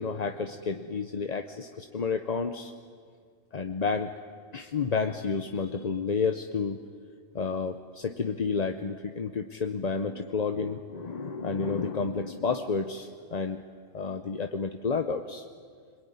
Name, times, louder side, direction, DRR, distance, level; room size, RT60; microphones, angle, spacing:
voice 1, 0.0-2.7 3.5-4.1 4.5-6.8 7.3-13.6 13.9-15.4, left 5 dB, 35° left, 7 dB, 0.8 m, -30 dB
25.5 x 22.5 x 9.6 m, 2.1 s
omnidirectional pair, 1.4 m